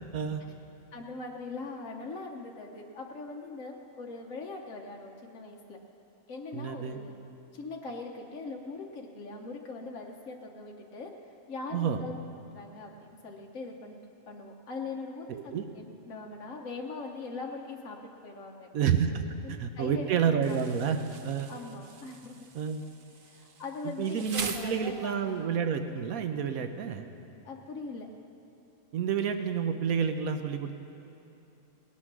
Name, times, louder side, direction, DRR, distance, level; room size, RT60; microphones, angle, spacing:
voice 1, 0.9-5.8 6.3-7.2 7.5-11.1 11.5-12.2 12.5-14.0 14.3-18.0 18.2-18.7 19.4-20.8 21.5-22.4 23.2-25.5 27.4-28.1, left 3 dB, 65° left, 0 dB, 1.3 m, -41 dB
voice 2, 6.5-7.0 11.7-12.0 15.3-15.7 18.7-21.5 22.5-22.8 23.8-27.1 28.9-30.7, right 7 dB, 80° right, 8 dB, 1.2 m, -29 dB
Insect, 20.4-25.4, right 4 dB, 45° right, 0.7 m, -43 dB
19.0 x 9.8 x 6.1 m, 2.9 s
omnidirectional pair, 1.5 m